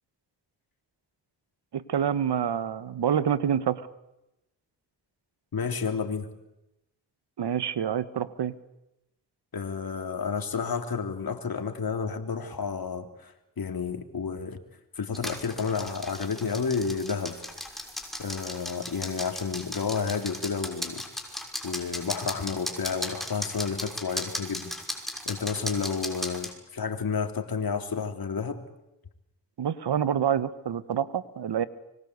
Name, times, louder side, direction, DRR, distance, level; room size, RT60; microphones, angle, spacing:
voice 1, 1.7-3.8 7.4-8.5 29.6-31.7, right 8 dB, 65° right, 15 dB, 1.6 m, -27 dB
voice 2, 5.5-6.3 9.5-14.6 15.0-17.4 18.2-24.8 25.3-28.6, left 5 dB, 55° left, 6 dB, 3.6 m, -31 dB
sound 1, 15.1-26.5, left 1 dB, ahead, 6.1 m, -37 dB
25.0 x 23.5 x 8.3 m, 0.90 s
supercardioid pair, 45°, 43 cm